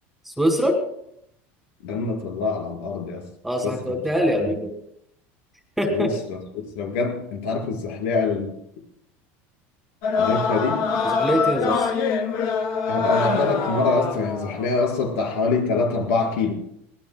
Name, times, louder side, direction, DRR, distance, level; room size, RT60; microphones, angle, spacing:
voice 1, 0.4-0.8 3.4-4.7 5.8-6.1 11.0-11.9, equal, ahead, 3 dB, 2.3 m, -23 dB
voice 2, 1.8-3.2 3.6-4.0 4.4-4.6 5.9-6.4 6.7-8.5 10.1-10.9 12.9-16.5, left 4 dB, 90° left, -1 dB, 5.0 m, -25 dB
sound 1, 10.0-14.8, left 5 dB, 55° left, 2.0 m, -24 dB
23.5 x 18.5 x 2.2 m, 0.73 s
cardioid pair, 150°, 7 cm